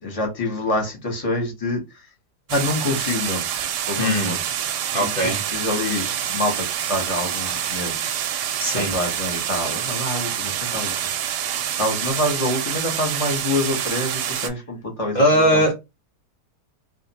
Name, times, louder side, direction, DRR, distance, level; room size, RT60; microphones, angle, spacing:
voice 1, 0.0-1.8 2.5-3.4 3.9-4.4 5.0-8.1 8.7-10.9 11.3-11.5 11.8-15.6, left 1 dB, 25° left, 0.9 m, -26 dB
sound 1, 2.5-14.5, right 9 dB, 90° right, 1.2 m, -27 dB
voice 2, 4.0-4.4 4.9-5.4 8.6-8.9 15.1-15.7, equal, 50° left, 0.5 m, -19 dB
2.5 x 2.5 x 4.0 m
omnidirectional pair, 1.8 m